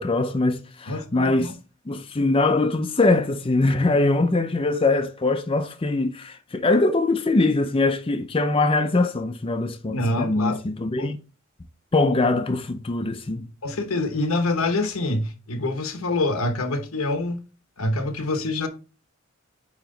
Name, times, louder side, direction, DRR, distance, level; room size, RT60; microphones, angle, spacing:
voice 1, 0.0-1.5 1.9-11.2 11.9-13.5, left 2 dB, 25° left, 0.5 m, -22 dB
voice 2, 0.9-1.5 9.9-10.6 11.0-11.1 13.6-17.4 17.8-18.7, left 2 dB, 85° left, 1.1 m, -26 dB
9.0 x 3.0 x 3.8 m
head